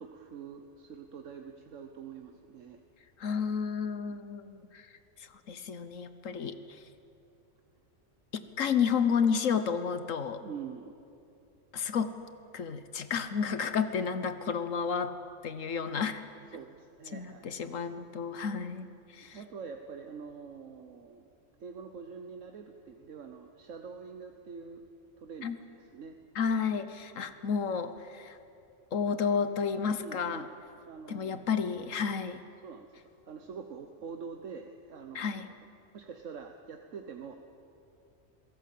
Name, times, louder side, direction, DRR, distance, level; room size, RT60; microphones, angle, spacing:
voice 1, 0.0-2.8 4.1-4.2 10.4-10.9 16.5-17.6 19.3-21.3 21.6-24.9 25.2-26.2 30.0-30.5 30.8-31.5 32.6-33.0 33.3-35.5 35.9-37.4, right 6 dB, 75° right, 5 dB, 1.5 m, -45 dB
voice 2, 3.2-4.9 5.2-6.8 8.3-10.4 11.7-12.2 12.5-15.1 15.4-16.2 17.1-19.4 25.4-25.6 26.3-28.4 28.9-30.4 31.1-32.4 35.1-35.4, left 6 dB, 80° left, 11 dB, 1.5 m, -31 dB
27.0 x 17.5 x 8.5 m, 2.6 s
omnidirectional pair, 1.3 m